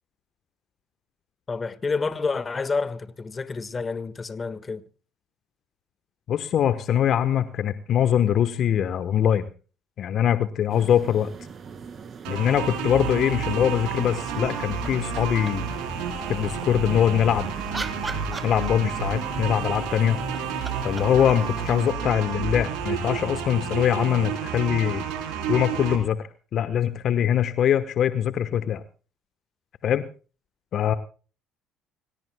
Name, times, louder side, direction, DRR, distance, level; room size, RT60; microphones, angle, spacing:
voice 1, 1.5-4.8, left 4 dB, 30° left, 1.5 m, -29 dB
voice 2, 6.3-9.5 10.0-11.3 12.3-15.7 16.3-17.5 18.4-20.2 20.8-25.1 25.5-26.3 26.5-28.8 29.8-30.1 30.7-31.0, left 9 dB, 55° left, 1.0 m, -23 dB
sound 1, 10.7-21.9, right 6 dB, 45° right, 2.2 m, -41 dB
sound 2, 12.2-26.0, right 6 dB, 75° right, 3.8 m, -30 dB
sound 3, 14.8-15.8 17.2-19.1 20.1-22.7 24.8-24.9, right 3 dB, 20° right, 1.9 m, -40 dB
26.5 x 17.0 x 2.2 m
hypercardioid pair, 65°, 0 cm